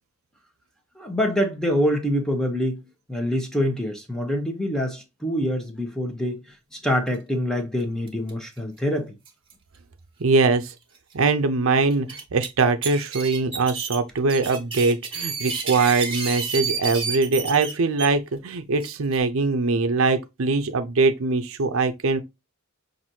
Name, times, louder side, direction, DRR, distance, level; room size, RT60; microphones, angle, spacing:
voice 1, 1.0-6.4 6.7-9.1, equal, 5° left, 0.9 m, -25 dB
sound 1, 8.1-8.3 8.6-8.7 9.2-9.5 10.4-10.5 10.9-11.0 11.9-12.5 12.8-18.1 18.8-19.2, right 5 dB, 25° right, 1.2 m, -30 dB
voice 2, 10.2-10.7 11.1-22.2, right 3 dB, 65° right, 0.6 m, -22 dB
5.9 x 2.6 x 2.7 m
head